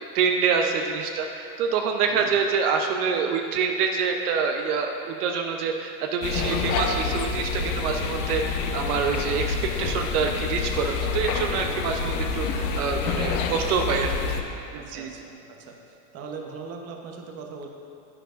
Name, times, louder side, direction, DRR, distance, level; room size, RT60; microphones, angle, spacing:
voice 1, 0.1-14.4 14.7-15.1, right 6 dB, 65° right, 3 dB, 0.9 m, -26 dB
sound 1, 6.2-14.4, left 5 dB, 60° left, 1.0 m, -28 dB
voice 2, 14.7-15.2 15.6-15.7 16.1-17.7, right 5 dB, 30° right, 2 dB, 1.0 m, -39 dB
11.0 x 9.8 x 2.6 m, 2.6 s
hypercardioid pair, 120°, 48 cm